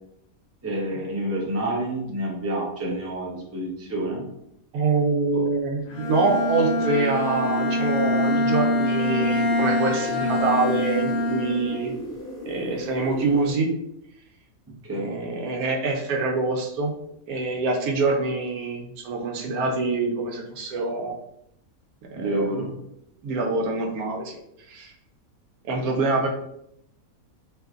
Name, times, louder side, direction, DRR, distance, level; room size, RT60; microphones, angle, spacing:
voice 1, 0.6-4.2 5.3-5.4 14.8-15.2 22.1-22.7, right 1 dB, 20° right, -3 dB, 0.3 m, -28 dB
voice 2, 4.7-11.9 12.5-13.7 14.9-16.9 17.3-21.2 22.1-22.7 23.2-24.4 24.7-24.9 25.6-26.3, right 3 dB, 90° right, 1 dB, 1.1 m, -25 dB
Bowed string instrument, 5.9-12.0, left 1 dB, 60° left, 0.8 m, -24 dB
sound 1, 6.0-13.5, equal, 40° left, 1.5 m, -36 dB
3.0 x 2.6 x 2.4 m, 0.77 s
omnidirectional pair, 1.5 m